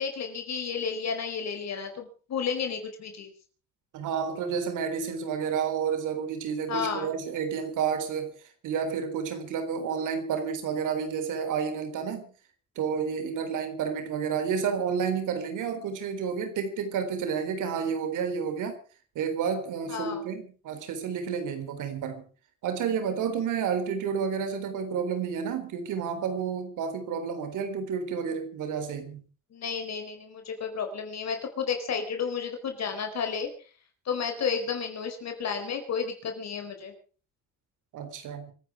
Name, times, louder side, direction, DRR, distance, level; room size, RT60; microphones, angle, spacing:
voice 1, 0.0-3.3 6.7-7.1 19.9-20.2 29.5-33.5 34.1-36.9, left 6 dB, 60° left, 4.5 m, -32 dB
voice 2, 3.9-8.3 8.6-12.3 12.8-18.8 19.2-22.2 22.6-29.2 37.9-38.5, right 6 dB, 85° right, 3.8 m, -30 dB
26.0 x 10.5 x 4.8 m
cardioid pair, 90°, 30 cm